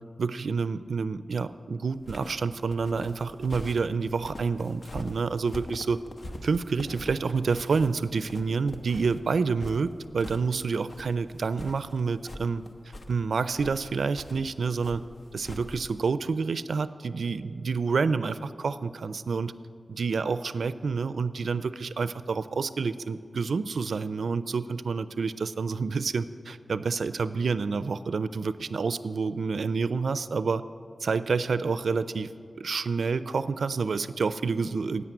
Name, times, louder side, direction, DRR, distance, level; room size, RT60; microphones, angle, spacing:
voice 1, 0.2-6.0 6.4-12.6 13.1-15.0 15.3-19.5 19.9-30.6 31.0-32.3 32.6-35.0, right 4 dB, 85° right, 14 dB, 0.4 m, -28 dB
sound 1, 2.0-16.0, left 1 dB, 60° left, 1.0 m, -43 dB
11.0 x 8.3 x 9.0 m, 2.3 s
cardioid pair, 50°, 0 cm